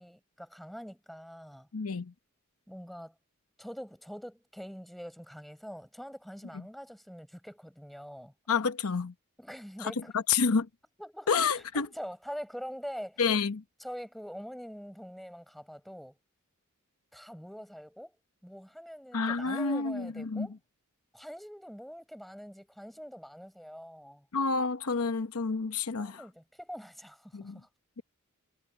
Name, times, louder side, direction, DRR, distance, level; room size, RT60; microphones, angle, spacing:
voice 1, 0.0-1.7 2.7-3.1 3.6-8.3 9.4-10.1 11.0-13.2 13.8-16.2 17.1-18.1 18.4-20.6 21.1-24.3 26.0-27.7, equal, ahead, 6.1 m, -44 dB
voice 2, 1.7-2.1 8.5-9.1 9.8-10.7 11.3-11.9 13.2-13.6 19.1-20.5 24.3-26.2 27.3-27.6, left 5 dB, 75° left, 0.9 m, -29 dB
head